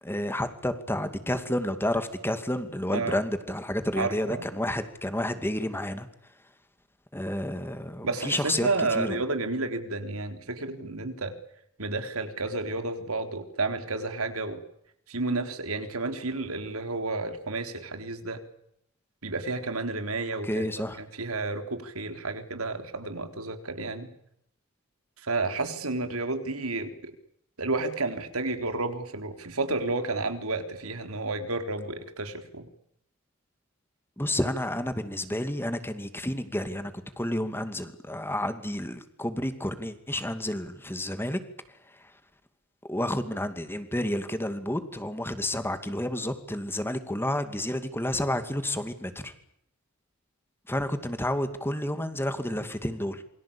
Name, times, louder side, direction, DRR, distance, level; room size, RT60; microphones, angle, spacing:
voice 1, 0.0-6.1 7.1-9.2 20.4-21.0 34.2-41.4 41.9-42.1 42.9-49.3 50.7-53.2, left 1 dB, 10° left, 9 dB, 2.4 m, -30 dB
voice 2, 4.0-4.5 8.0-11.3 11.8-14.6 15.1-18.4 19.2-20.7 21.2-24.1 25.2-26.9 27.6-32.7, right 3 dB, 85° right, 7 dB, 3.8 m, -31 dB
28.0 x 23.5 x 8.7 m, 0.74 s
head